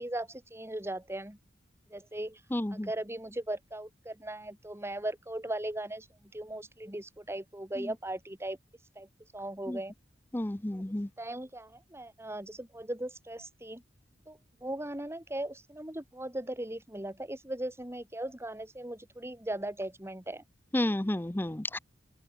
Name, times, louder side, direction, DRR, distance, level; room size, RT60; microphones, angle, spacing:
voice 1, 0.0-1.4 1.9-2.4 2.7-8.6 9.0-9.1 9.3-9.9 10.7-10.8 11.2-13.8 14.3-20.4, right 1 dB, 15° right, 2.7 m, -38 dB
voice 2, 2.5-2.9 9.7-9.8 10.3-11.1 20.7-21.8, left 1 dB, 10° left, 0.5 m, -31 dB
open air
head